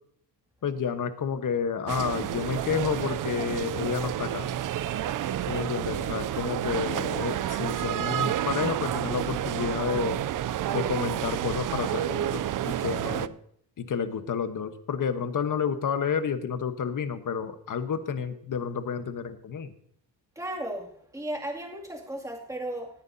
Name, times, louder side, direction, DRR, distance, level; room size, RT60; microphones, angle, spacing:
voice 1, 0.6-4.5 5.5-10.3 10.7-13.3 13.8-19.7, left 6 dB, 50° left, 10 dB, 1.2 m, -30 dB
sound 1, 1.9-13.3, right 11 dB, 50° right, 0.5 m, -30 dB
voice 2, 20.4-22.9, right 1 dB, 10° right, -1 dB, 2.4 m, -35 dB
18.5 x 9.6 x 2.7 m, 0.67 s
cardioid pair, 110°, 41 cm